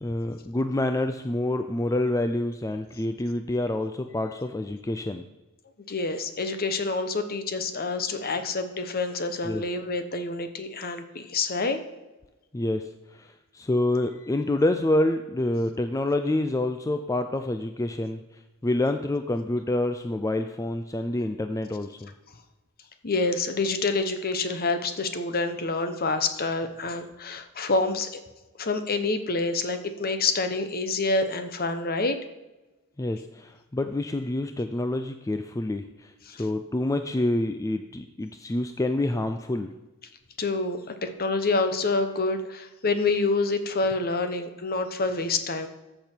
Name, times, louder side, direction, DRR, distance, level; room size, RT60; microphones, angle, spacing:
voice 1, 0.0-5.2 9.4-9.6 12.5-18.2 18.6-22.1 33.0-39.7, left 1 dB, 15° left, 8 dB, 0.4 m, -27 dB
voice 2, 5.9-11.8 23.0-28.2 28.6-32.2 36.3-36.4 40.4-45.7, left 3 dB, 45° left, 8 dB, 1.0 m, -27 dB
13.5 x 6.8 x 4.5 m, 1.1 s
head